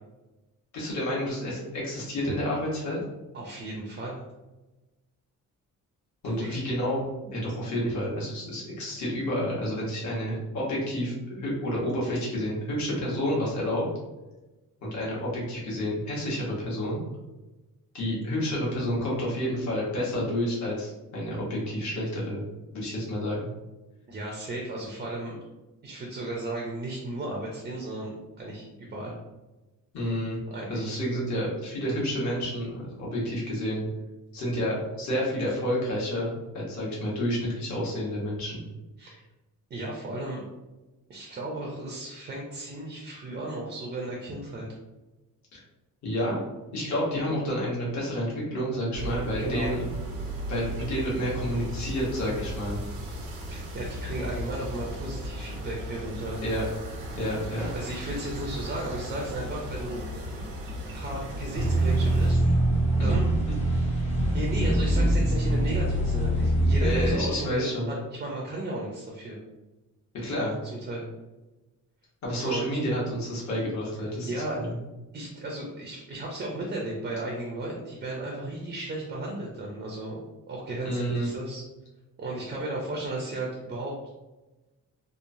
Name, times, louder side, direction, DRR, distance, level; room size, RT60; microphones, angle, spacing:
voice 1, 0.7-3.0 6.2-13.8 14.8-17.0 17.9-22.4 22.7-23.5 29.9-30.4 30.7-33.9 34.3-38.6 45.5-45.6 46.0-46.4 46.7-49.9 50.5-52.8 56.4-56.6 57.2-57.7 63.0-63.1 66.8-67.9 70.1-70.6 72.2-74.7 80.8-81.3, equal, 55° left, -5 dB, 1.1 m, -29 dB
voice 2, 3.3-4.2 6.2-6.6 24.1-25.4 25.8-28.1 28.4-29.2 30.5-30.9 39.0-39.2 39.7-40.4 41.1-44.7 49.4-49.7 53.5-56.4 57.7-60.0 60.8-62.5 63.0-63.3 63.6-69.4 70.8-71.1 72.3-72.6 74.3-74.6 75.1-80.2 80.5-81.6 82.2-83.9, right 2 dB, 30° right, -2 dB, 0.4 m, -35 dB
sound 1, 48.9-62.3, right 1 dB, 90° right, 0.8 m, -36 dB
sound 2, 61.5-67.1, right 1 dB, 20° left, 0.7 m, -23 dB
2.9 x 2.0 x 2.6 m, 1.1 s
cardioid pair, 175°, 33 cm